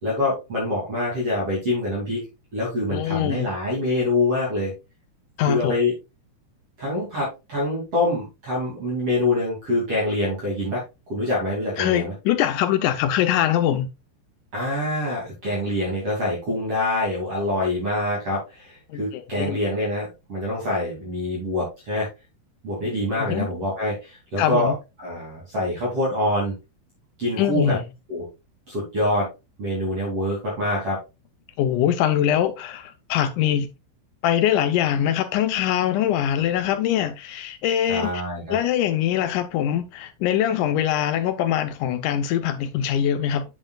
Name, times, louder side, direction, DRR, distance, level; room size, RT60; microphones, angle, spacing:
voice 1, 0.0-2.2 2.5-4.7 5.5-5.9 6.8-10.8 11.1-12.1 14.5-22.1 22.6-24.7 25.0-26.5 27.2-27.8 28.1-28.2 28.7-29.3 29.6-31.0 37.9-38.6, left 1 dB, 45° right, 3.4 m, -25 dB
voice 2, 2.9-3.5 5.4-5.7 11.8-13.9 18.9-19.6 23.1-23.5 24.4-24.7 27.4-27.8 31.6-33.7 34.2-38.2 38.5-43.4, left 10 dB, 80° left, 1.9 m, -23 dB
7.7 x 7.2 x 2.3 m
omnidirectional pair, 4.1 m